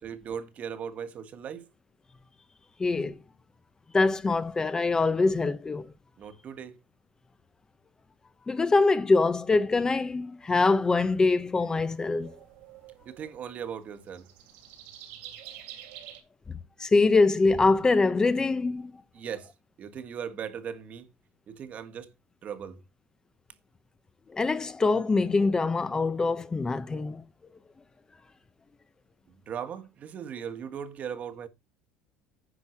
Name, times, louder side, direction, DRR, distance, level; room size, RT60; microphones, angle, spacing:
voice 1, 0.0-1.7 6.2-6.8 13.0-14.3 19.1-19.5 19.8-21.1 21.5-22.1 22.4-22.8 29.4-31.5, right 8 dB, 45° right, 1.5 m, -38 dB
voice 2, 2.8-3.2 3.9-5.9 8.5-12.3 16.8-18.9 24.3-27.2, left 3 dB, 20° left, 0.9 m, -24 dB
sound 1, 10.4-16.2, right 11 dB, 80° right, 3.0 m, -49 dB
10.0 x 5.8 x 4.5 m
supercardioid pair, 105°, 4 cm